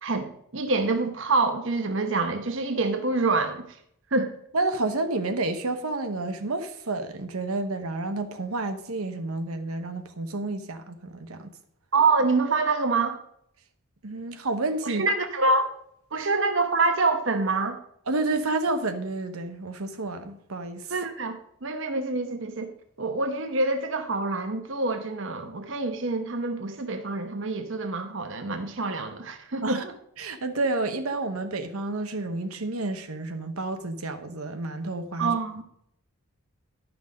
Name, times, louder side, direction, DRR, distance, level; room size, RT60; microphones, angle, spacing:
voice 1, 0.0-3.6 4.1-4.3 11.9-13.2 14.8-15.7 16.1-17.8 20.9-22.7 23.0-29.9 35.2-35.6, right 3 dB, 60° right, 7 dB, 0.9 m, -26 dB
voice 2, 4.5-11.5 14.0-15.0 16.1-16.3 18.1-20.9 29.6-29.8 30.2-35.4, right 2 dB, 85° right, 7 dB, 1.0 m, -30 dB
11.0 x 6.1 x 5.1 m, 0.70 s
head